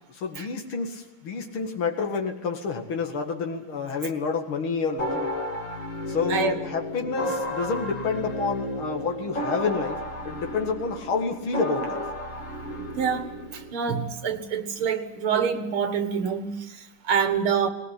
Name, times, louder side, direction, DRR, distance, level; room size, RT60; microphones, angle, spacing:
voice 1, 0.1-5.3 6.1-12.0, left 5 dB, 85° left, 2 dB, 2.8 m, -29 dB
sound 1, 5.0-13.7, left 1 dB, 40° left, 2.1 m, -32 dB
voice 2, 13.0-13.3 13.5-17.7, right 6 dB, 85° right, 9 dB, 2.5 m, -26 dB
19.5 x 19.5 x 9.9 m, 0.93 s
omnidirectional pair, 2.3 m